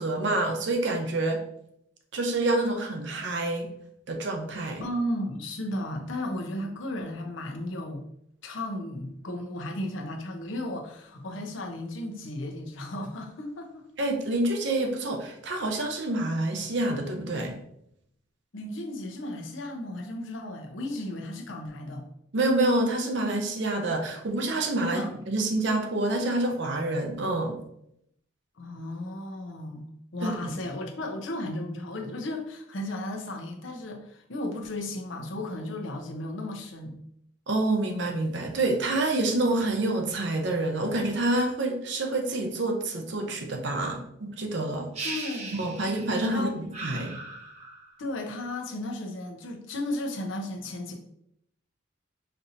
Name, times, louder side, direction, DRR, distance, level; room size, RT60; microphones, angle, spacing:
voice 1, 0.0-1.4 2.1-3.7 4.1-4.8 14.0-17.6 22.3-27.6 30.2-30.6 37.5-44.9 45.5-47.2, right 2 dB, 60° right, 3 dB, 0.7 m, -27 dB
voice 2, 4.8-8.0 8.4-13.9 18.5-22.1 24.8-25.2 28.6-36.9 45.0-45.6 46.3-46.6 48.0-51.0, left 1 dB, 75° left, 2 dB, 0.7 m, -34 dB
sound 1, 44.9-46.3 46.7-48.0, right 3 dB, 35° right, 0.9 m, -38 dB
5.3 x 2.8 x 2.6 m, 0.74 s
head